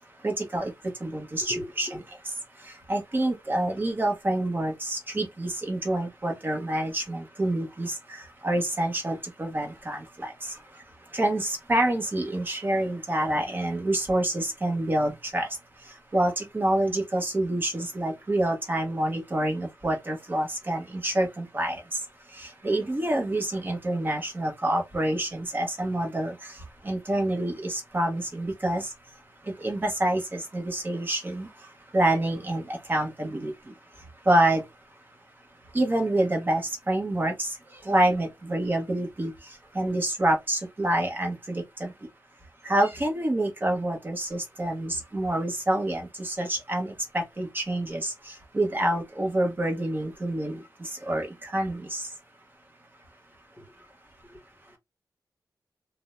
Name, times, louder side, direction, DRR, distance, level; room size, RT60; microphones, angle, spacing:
voice 1, 0.2-0.7 1.0-1.9 2.9-10.6 11.1-15.5 16.1-22.0 22.3-26.6 26.8-28.9 29.5-31.5 31.9-33.5 34.3-34.6 35.7-37.6 37.8-39.3 39.7-41.9 42.6-52.1, right 1 dB, 30° right, 0.8 m, -27 dB
voice 2, 1.4-2.0 53.6-53.9 54.2-54.4 54.7-54.8, equal, 20° left, 1.3 m, -40 dB
2.6 x 2.0 x 3.0 m
wide cardioid pair, 125°, 7 cm